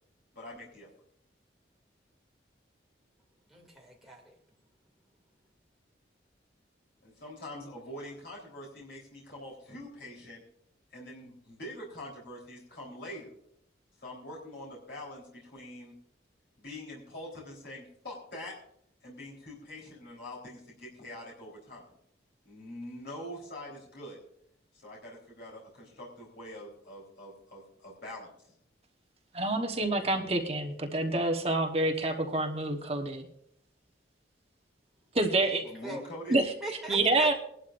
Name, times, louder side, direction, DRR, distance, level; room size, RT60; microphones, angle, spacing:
voice 1, 0.3-0.9 7.0-10.4 10.9-13.3 14.0-15.9 16.6-18.5 19.0-21.8 22.5-24.2 24.8-28.3 35.6-36.4, left 1 dB, 60° left, -4 dB, 3.8 m, -44 dB
voice 2, 3.5-4.4 35.4-36.0 36.3-37.3, right 1 dB, ahead, -2 dB, 2.6 m, -42 dB
voice 3, 29.3-33.3 35.1-35.6 36.3-36.5 36.9-37.3, right 2 dB, 30° right, 3 dB, 1.2 m, -27 dB
21.0 x 11.5 x 2.6 m, 0.70 s
head